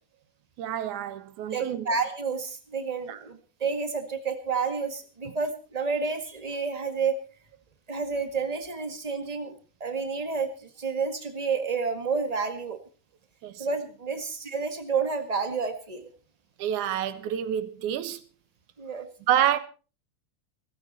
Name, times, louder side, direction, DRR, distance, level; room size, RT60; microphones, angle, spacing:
voice 1, 0.6-1.9 3.1-3.2 13.4-13.7 16.6-18.2 19.3-19.6, right 11 dB, 85° right, 2.6 m, -28 dB
voice 2, 1.5-7.2 7.9-12.8 13.6-16.1 18.8-19.1, right 5 dB, 15° right, 1.3 m, -30 dB
17.0 x 15.0 x 4.3 m
omnidirectional pair, 3.4 m